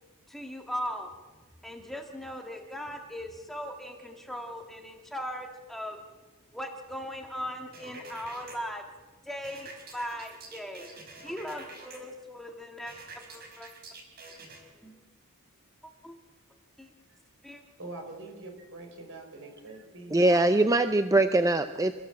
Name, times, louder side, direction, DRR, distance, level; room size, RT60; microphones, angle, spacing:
voice 1, 0.3-1.1 1.6-6.0 6.5-8.8 9.3-10.9 11.2-13.7 14.8-15.0 16.0-16.1 16.8-16.9 17.4-17.6, equal, ahead, 2 dB, 1.9 m, -39 dB
sound 1, 7.7-8.6 9.4-12.0 12.9-14.6, right 3 dB, 45° right, 5.0 m, -47 dB
voice 2, 17.8-20.7, right 2 dB, 60° right, 4 dB, 5.6 m, -44 dB
voice 3, 20.1-21.9, right 2 dB, 15° right, 9 dB, 0.6 m, -22 dB
28.5 x 15.0 x 7.6 m, 1.3 s
head